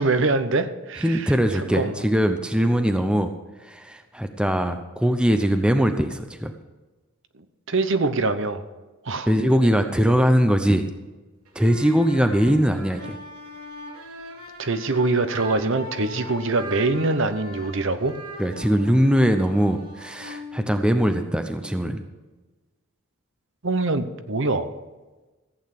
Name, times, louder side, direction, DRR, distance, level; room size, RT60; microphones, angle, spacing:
voice 1, 0.0-1.3 1.7-2.0 7.7-8.6 9.0-9.3 14.6-18.2 23.6-24.7, right 3 dB, 55° right, 10 dB, 0.9 m, -24 dB
voice 2, 1.0-3.3 3.6-6.5 9.3-10.9 11.5-13.2 18.4-22.0, equal, 5° right, 7 dB, 0.7 m, -21 dB
sound 1, 11.5-21.2, equal, 85° right, 2.8 m, -40 dB
15.0 x 8.8 x 6.0 m, 1.2 s
head